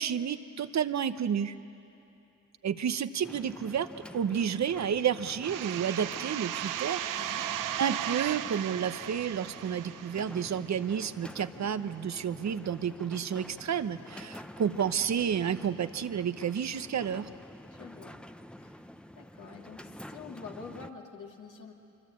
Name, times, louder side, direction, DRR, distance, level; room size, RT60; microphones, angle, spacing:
voice 1, 0.0-1.5 2.6-3.9 4.1-7.4 7.8-17.3, right 8 dB, 60° right, 12 dB, 0.9 m, -31 dB
sound 1, 3.2-20.9, equal, 5° left, 0.8 m, -48 dB
sound 2, 5.4-10.9, right 11 dB, 85° right, 0.6 m, -36 dB
voice 2, 7.1-7.4 17.7-18.2 18.6-18.9 19.1-21.7, left 5 dB, 70° left, 0 dB, 2.5 m, -47 dB
25.0 x 24.5 x 8.6 m, 2.8 s
cardioid pair, 75°, 31 cm